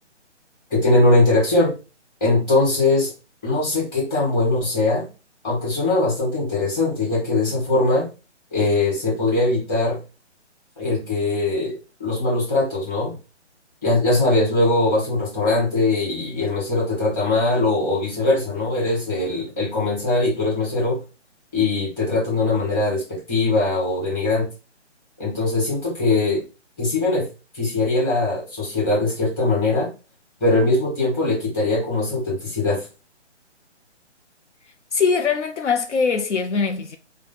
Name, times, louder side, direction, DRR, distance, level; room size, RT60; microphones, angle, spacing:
voice 1, 0.7-1.7 2.2-3.1 3.4-5.1 5.4-8.1 8.5-10.0 10.8-11.7 12.0-13.1 13.8-21.0 21.5-23.0 23.3-24.5 25.2-26.4 26.8-27.3 27.5-29.9 30.4-32.8, left 2 dB, 15° left, 1.5 m, -21 dB
voice 2, 34.9-37.0, left 5 dB, 75° left, 0.6 m, -22 dB
4.7 x 2.3 x 3.8 m
hypercardioid pair, 165°, 36 cm